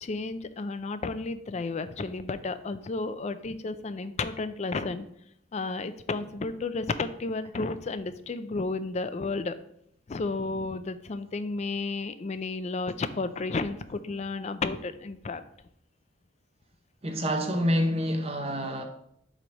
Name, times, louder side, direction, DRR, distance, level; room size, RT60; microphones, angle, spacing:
voice 1, 0.0-5.1 5.5-9.5 10.1-15.4, left 3 dB, 35° left, 0.4 m, -32 dB
voice 2, 17.0-18.8, equal, 30° right, 0.8 m, -27 dB
7.5 x 3.3 x 5.2 m
head